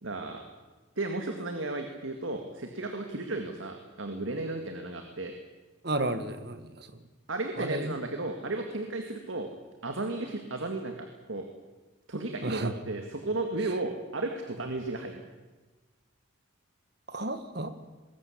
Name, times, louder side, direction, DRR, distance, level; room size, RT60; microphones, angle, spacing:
voice 1, 0.0-0.4 1.0-5.3 7.3-9.5 9.8-11.5 12.1-15.2, right 2 dB, 75° right, 4 dB, 2.1 m, -34 dB
voice 2, 5.8-6.6 7.6-7.9 12.4-12.7 17.1-17.7, right 2 dB, 55° right, 10 dB, 1.7 m, -32 dB
21.5 x 17.5 x 8.6 m, 1.2 s
head